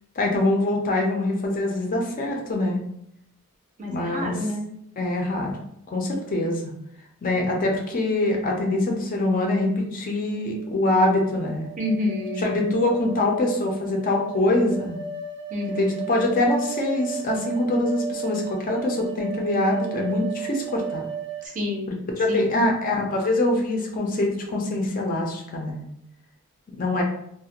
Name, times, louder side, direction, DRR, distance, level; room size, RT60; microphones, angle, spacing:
voice 1, 0.2-2.8 3.9-4.4 5.0-5.5 5.9-6.6 7.2-11.7 12.4-15.0 15.7-21.1 22.2-25.8 26.7-27.0, left 2 dB, 40° left, 1 dB, 0.4 m, -24 dB
voice 2, 3.8-4.7 11.8-12.7 15.5-16.1 21.4-21.9 22.3-22.5, left 2 dB, 35° right, 0 dB, 0.5 m, -29 dB
sound 1, 10.6-21.5, right 6 dB, 85° right, 0.5 m, -35 dB
2.4 x 2.0 x 2.8 m, 0.75 s
head